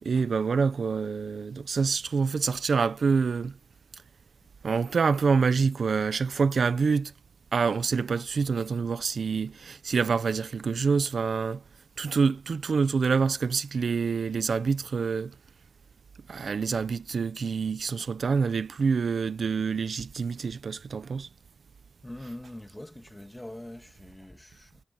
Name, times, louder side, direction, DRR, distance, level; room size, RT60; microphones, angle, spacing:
voice 1, 0.0-3.6 4.6-7.1 7.5-11.6 12.0-15.3 16.3-21.3, right 5 dB, 80° right, 0.8 m, -26 dB
voice 2, 22.0-24.8, left 1 dB, 15° left, 2.6 m, -43 dB
wide cardioid pair, 65°, 0 cm